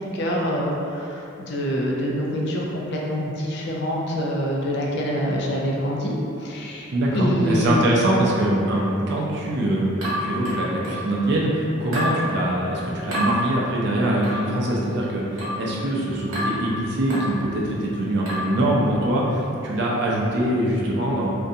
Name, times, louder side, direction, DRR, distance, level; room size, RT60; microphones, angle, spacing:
voice 1, 0.1-6.1 6.4-7.8, equal, 55° left, -3 dB, 0.4 m, -25 dB
voice 2, 6.9-9.9 10.2-21.3, right 1 dB, 55° right, -4 dB, 0.4 m, -23 dB
sound 1, 10.0-11.1 11.9-12.2 13.1-13.3 14.2-14.5 15.4-15.7 16.3-16.6 17.1-17.4 18.3-18.6, left 1 dB, 80° right, 0.9 m, -27 dB
2.4 x 2.2 x 2.6 m, 2.7 s
head